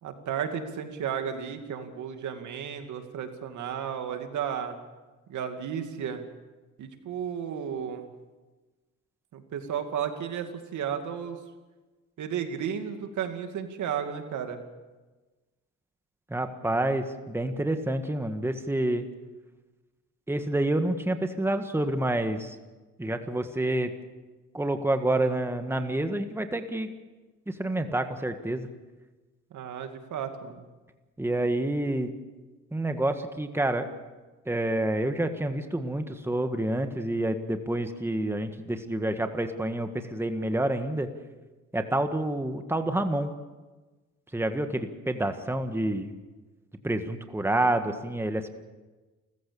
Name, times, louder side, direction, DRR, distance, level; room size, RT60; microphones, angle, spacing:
voice 1, 0.0-4.8 5.3-6.2 6.8-8.1 9.3-11.4 12.2-14.6 29.5-30.6, right 8 dB, 75° right, 6 dB, 2.5 m, -33 dB
voice 2, 16.3-19.1 20.3-22.6 23.0-23.9 24.5-26.9 27.5-28.7 31.2-32.1 32.7-33.9 34.5-41.1 41.7-43.3 44.3-46.1 46.8-48.5, right 1 dB, 10° right, 7 dB, 1.7 m, -28 dB
29.0 x 15.0 x 7.1 m, 1.2 s
cardioid pair, 90°, 30 cm